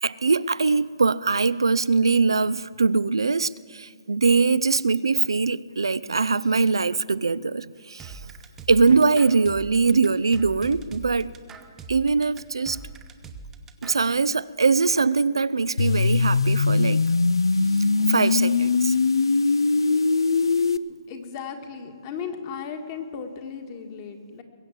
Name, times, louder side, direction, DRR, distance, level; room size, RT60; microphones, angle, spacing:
voice 1, 0.0-8.2 8.7-11.3 11.9-12.8 13.8-17.0 18.1-19.0, right 4 dB, 85° right, 0.4 m, -22 dB
sound 1, 8.0-14.0, right 5 dB, 15° right, 0.9 m, -42 dB
sound 2, 15.8-20.8, left 4 dB, 85° left, 0.5 m, -21 dB
voice 2, 21.1-24.4, left 6 dB, 35° left, 1.8 m, -36 dB
21.5 x 8.0 x 7.4 m
hypercardioid pair, 140°, 2 cm